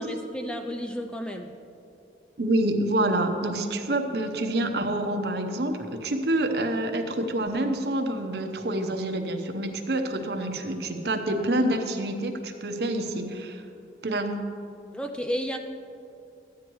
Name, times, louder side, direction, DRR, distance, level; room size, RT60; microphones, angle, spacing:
voice 1, 0.0-1.5 14.9-15.6, equal, 5° left, 4 dB, 0.4 m, -32 dB
voice 2, 2.4-13.6 14.0-14.4, right 1 dB, 65° right, 5 dB, 0.8 m, -27 dB
14.0 x 9.5 x 3.1 m, 2.6 s
head